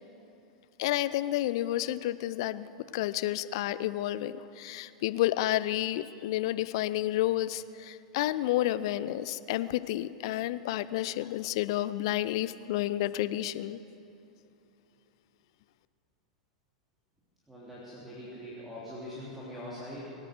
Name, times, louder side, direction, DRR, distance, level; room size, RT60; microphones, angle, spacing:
voice 1, 0.8-2.7 2.9-13.8, left 14 dB, 55° left, 15 dB, 0.5 m, -30 dB
voice 2, 17.5-20.1, left 1 dB, 5° right, -7 dB, 3.2 m, -42 dB
23.5 x 9.1 x 6.7 m, 2.7 s
figure-of-eight pair, 90°, 3 cm